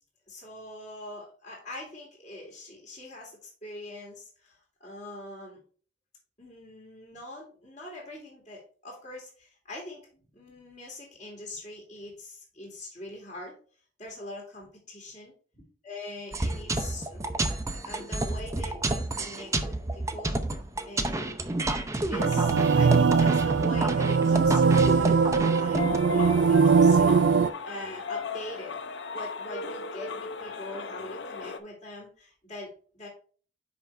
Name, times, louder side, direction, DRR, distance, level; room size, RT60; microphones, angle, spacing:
voice 1, 0.3-5.6 6.4-10.0 10.3-13.5 14.0-17.2 17.5-20.5 20.8-21.7 22.1-28.8 29.1-33.1, left 1 dB, 40° left, -2 dB, 2.1 m, -43 dB
sound 1, 16.3-26.0, right 2 dB, 15° right, 0.6 m, -30 dB
sound 2, 22.2-27.5, right 5 dB, 90° right, 0.4 m, -21 dB
sound 3, 25.7-31.6, left 5 dB, 80° left, 0.7 m, -36 dB
5.7 x 5.2 x 4.4 m, 0.41 s
head